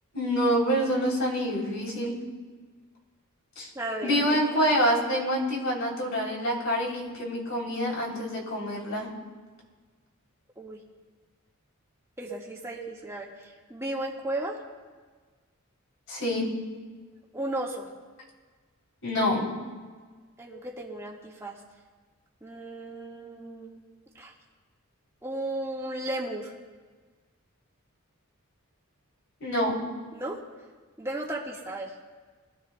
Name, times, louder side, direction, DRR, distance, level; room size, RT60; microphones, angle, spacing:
voice 1, 0.1-2.1 3.6-3.7 4.0-9.1 16.1-16.5 19.0-19.5 29.4-29.8, equal, 60° left, -2 dB, 3.4 m, -26 dB
voice 2, 3.7-4.4 10.6-10.8 12.2-14.6 17.3-17.9 20.4-21.6 22.4-23.8 24.1-24.3 25.2-26.5 30.1-30.4 31.0-31.9, right 1 dB, 15° right, -3 dB, 1.6 m, -35 dB
22.5 x 13.5 x 2.3 m, 1.5 s
head